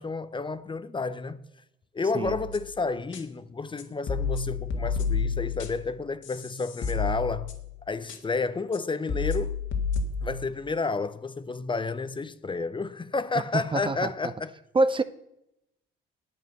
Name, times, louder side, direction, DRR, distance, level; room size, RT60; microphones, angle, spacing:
voice 1, 0.0-1.4 1.9-7.5 7.9-9.6 10.2-14.5, left 4 dB, 25° left, 0.7 m, -31 dB
sound 1, 2.2-2.7 3.1-3.2 3.8-5.9 6.2-7.8 8.1-8.2 8.7-8.8 9.1-10.5, left 5 dB, 70° left, 1.7 m, -30 dB
voice 2, 13.5-14.1 14.7-15.0, right 2 dB, 25° right, 0.6 m, -25 dB
9.4 x 8.6 x 6.7 m
cardioid pair, 90°, 20 cm